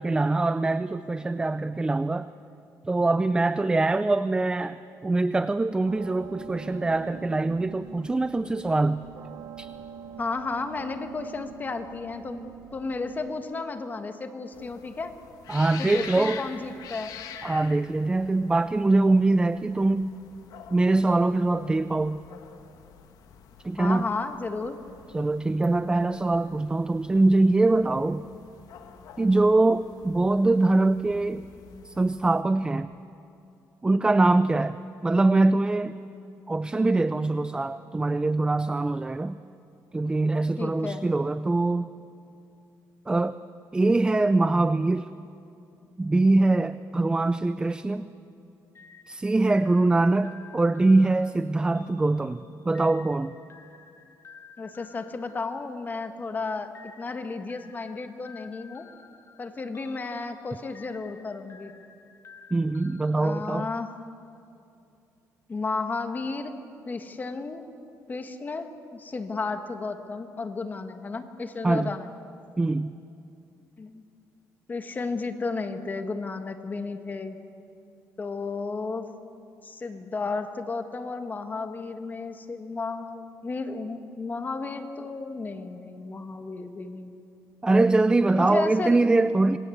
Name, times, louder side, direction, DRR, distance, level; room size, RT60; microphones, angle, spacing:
voice 1, 0.0-2.3 2.8-9.0 9.6-9.7 15.5-16.4 17.4-20.1 20.7-22.2 23.6-24.1 25.1-28.3 29.2-31.5 31.8-32.9 33.8-34.8 35.0-36.0 36.5-39.4 39.9-41.9 43.1-43.4 43.7-45.1 46.0-48.1 49.1-53.3 62.5-63.7 71.6-71.9 72.6-72.9 87.6-89.6, right 2 dB, 15° right, 13 dB, 0.5 m, -23 dB
Seven O'Clock, 5.8-13.4, right 8 dB, 65° right, 1.8 m, -44 dB
voice 2, 10.2-15.2 15.8-17.1 23.8-24.8 40.6-41.1 54.6-58.9 59.4-61.7 63.1-63.9 65.5-66.6 66.8-67.6 68.1-72.1 73.8-74.0 74.7-77.4 78.2-79.1 79.6-87.1 88.4-89.1, left 3 dB, 25° left, 7 dB, 1.6 m, -33 dB
sound 1, 14.5-32.4, left 8 dB, 70° left, 2.0 m, -46 dB
sound 2, 48.7-56.2 56.7-64.0, left 5 dB, 45° left, 1.9 m, -53 dB
26.5 x 21.0 x 7.9 m, 2.6 s
cardioid pair, 115°, 7 cm